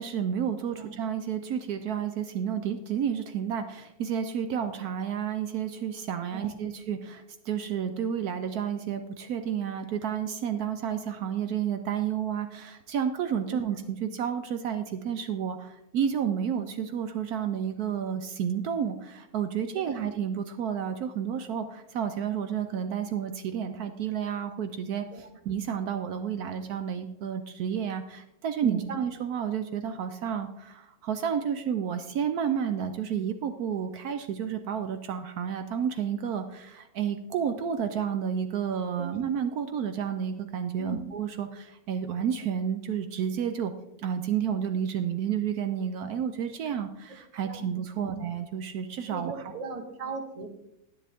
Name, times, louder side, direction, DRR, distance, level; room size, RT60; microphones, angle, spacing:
voice 1, 0.0-43.7 44.0-49.4, right 8 dB, 70° right, 8 dB, 1.1 m, -31 dB
voice 2, 28.6-28.9 39.0-39.2 40.8-41.0 47.4-47.7 47.9-48.1 49.1-50.5, right 4 dB, 25° right, 5 dB, 1.0 m, -37 dB
10.5 x 10.0 x 3.5 m, 0.86 s
omnidirectional pair, 1.7 m